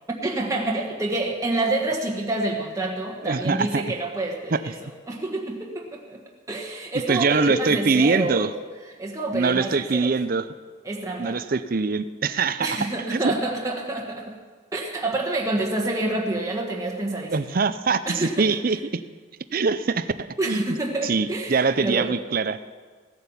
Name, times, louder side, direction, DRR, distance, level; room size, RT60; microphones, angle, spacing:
voice 1, 0.1-6.2 6.5-8.5 8.8-10.1 10.8-11.4 12.6-14.4 14.7-17.6 18.1-18.5 20.4-22.2, right 2 dB, 15° right, -1 dB, 1.4 m, -28 dB
voice 2, 3.2-3.8 4.5-4.6 7.1-8.5 9.3-10.5 11.2-12.8 13.1-13.3 17.3-19.0 19.5-20.1 20.4-20.8 21.0-22.6, right 4 dB, 45° right, 13 dB, 0.5 m, -23 dB
16.5 x 9.8 x 7.1 m, 1.5 s
head